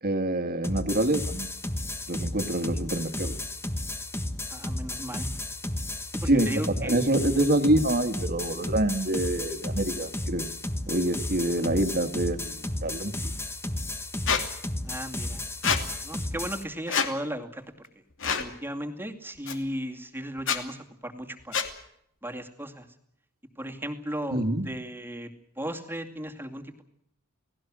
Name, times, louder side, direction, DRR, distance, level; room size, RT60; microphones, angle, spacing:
voice 1, 0.0-1.5 2.1-3.3 6.3-10.5 10.9-13.3 24.3-24.7, right 1 dB, 45° right, 9 dB, 2.1 m, -26 dB
sound 1, 0.6-16.6, left 1 dB, 10° left, 1.4 m, -33 dB
voice 2, 4.5-5.3 6.1-6.9 11.6-11.7 14.8-15.4 16.0-17.9 18.2-21.7 22.2-22.9 23.6-25.3 25.6-26.8, equal, 10° right, 4 dB, 2.4 m, -36 dB
Squeak, 14.3-14.4 15.6-15.8 16.9-17.1 18.2-18.5 19.5-19.6 20.4-20.6 21.5-21.7, left 6 dB, 60° left, 2.6 m, -26 dB
29.5 x 18.5 x 6.3 m, 0.73 s
head